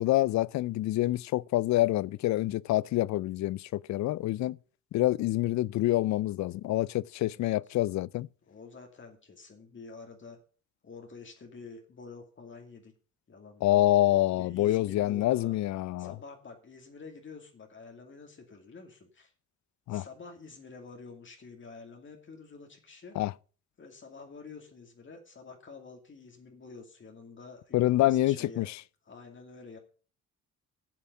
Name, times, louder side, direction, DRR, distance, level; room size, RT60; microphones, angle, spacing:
voice 1, 0.0-4.6 4.9-8.3 13.6-16.1 19.9-20.1 23.2-23.3 27.7-28.8, left 15 dB, 70° left, 0.5 m, -27 dB
voice 2, 8.5-10.4 10.8-12.9 13.3-13.8 14.3-15.6 16.0-19.3 19.9-23.2 23.8-28.7 29.1-29.8, left 4 dB, 40° left, 2.4 m, -48 dB
7.9 x 7.1 x 8.1 m
cardioid pair, 90°, 30 cm